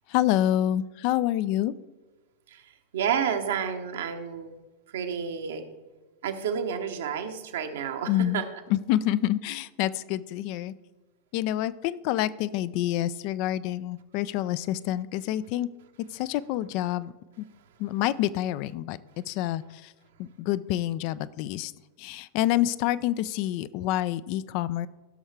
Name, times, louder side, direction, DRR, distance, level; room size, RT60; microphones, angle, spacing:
voice 1, 0.1-1.7 8.1-8.4 8.7-10.7 11.3-15.7 16.1-17.1 17.4-17.5 17.8-19.0 19.3-19.9 20.2-21.7 22.0-24.9, left 13 dB, 45° left, 16 dB, 0.3 m, -27 dB
voice 2, 2.5-4.5 4.9-5.7 6.2-8.4, right 7 dB, 60° right, 7 dB, 1.0 m, -30 dB
16.0 x 6.3 x 3.3 m, 1.2 s
figure-of-eight pair, 90°, 0 cm